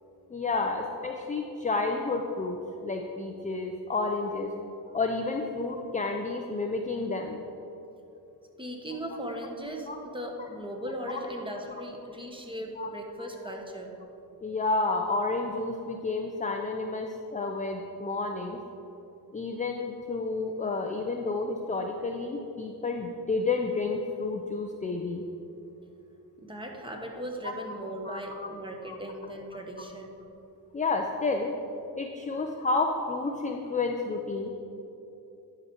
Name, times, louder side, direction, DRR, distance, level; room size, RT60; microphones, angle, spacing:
voice 1, 0.3-4.5 4.9-7.4 9.9-10.0 11.1-11.3 12.8-12.9 14.4-18.6 19.3-25.2 27.4-27.5 28.0-28.5 28.9-29.0 30.7-31.6 32.0-34.5, left 3 dB, 20° left, 3 dB, 0.5 m, -30 dB
voice 2, 8.6-13.9 26.4-30.1, equal, 10° right, 1 dB, 1.2 m, -38 dB
11.0 x 5.1 x 4.4 m, 2.9 s
cardioid pair, 80°, 42 cm